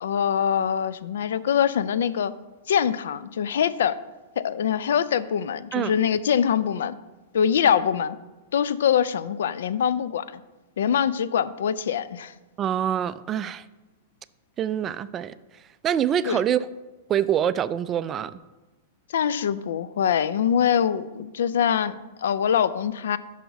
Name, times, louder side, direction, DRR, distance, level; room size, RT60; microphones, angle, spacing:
voice 1, 0.0-2.3 2.7-4.0 4.4-6.9 7.3-8.2 8.5-10.4 10.8-12.3 16.3-16.4 19.1-23.2, left 8 dB, 70° left, 15 dB, 0.4 m, -24 dB
voice 2, 12.6-13.6 14.6-15.3 15.8-16.7 17.1-18.3, right 9 dB, 30° right, 15 dB, 0.3 m, -25 dB
6.1 x 5.7 x 5.9 m, 1.1 s
hypercardioid pair, 105°, 0 cm